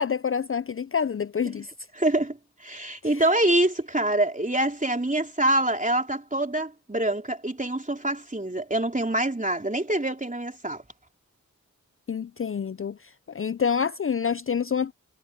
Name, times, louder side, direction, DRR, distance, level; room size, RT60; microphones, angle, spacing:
voice 1, 0.0-1.7 3.0-3.2 12.1-13.0 13.3-14.9, left 6 dB, 45° left, 0.4 m, -27 dB
voice 2, 1.9-2.4 2.6-10.8, right 1 dB, 25° right, 3.3 m, -25 dB
wide cardioid pair, 40°, 32 cm